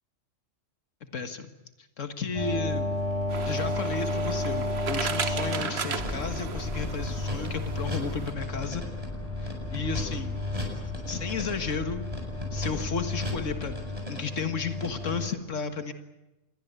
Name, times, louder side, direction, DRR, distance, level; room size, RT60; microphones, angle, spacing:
voice 1, 1.1-1.5 2.0-2.9 3.5-8.8 9.4-10.4 11.1-12.0 12.5-13.8 14.1-15.9, left 5 dB, 85° left, 7 dB, 1.9 m, -33 dB
sound 1, 2.3-15.3, left 2 dB, 30° right, 7.9 m, -33 dB
sound 2, 3.3-8.3, right 6 dB, 60° right, 1.4 m, -36 dB
sound 3, 6.0-14.1, left 2 dB, 15° left, 0.8 m, -39 dB
27.0 x 22.0 x 8.1 m, 1.0 s
omnidirectional pair, 1.3 m